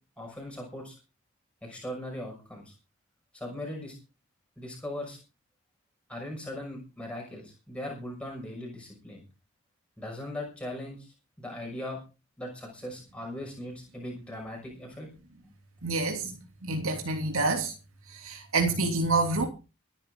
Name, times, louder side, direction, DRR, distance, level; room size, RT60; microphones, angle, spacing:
voice 1, 0.2-0.9 1.6-2.7 3.3-3.9 4.6-5.2 6.1-9.2 10.0-12.0 12.4-15.1, left 1 dB, 5° left, 6.2 m, -39 dB
voice 2, 15.8-16.3 16.6-17.7 18.1-19.5, right 3 dB, 70° right, 3.1 m, -27 dB
24.0 x 10.0 x 3.8 m
head